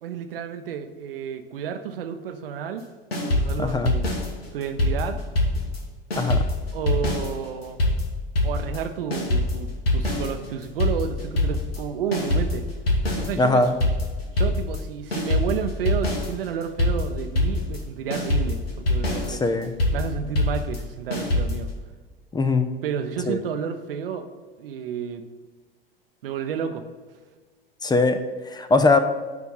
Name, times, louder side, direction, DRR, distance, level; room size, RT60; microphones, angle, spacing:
voice 1, 0.0-2.8 3.2-4.1 4.5-5.2 6.7-7.8 8.4-12.7 13.2-13.7 14.4-19.4 19.9-21.7 22.8-24.3 24.6-25.2 26.2-26.8, right 7 dB, 70° right, 8 dB, 0.8 m, -31 dB
sound 1, 3.1-5.8 6.1-21.7, left 1 dB, 85° left, 1.5 m, -24 dB
voice 2, 3.6-3.9 6.1-6.4 13.4-13.7 19.3-19.7 22.3-22.7 23.3-23.4 27.8-28.2 28.5-29.0, left 3 dB, 15° left, 9 dB, 0.5 m, -20 dB
9.4 x 3.5 x 5.5 m, 1.4 s
hypercardioid pair, 85°, 29 cm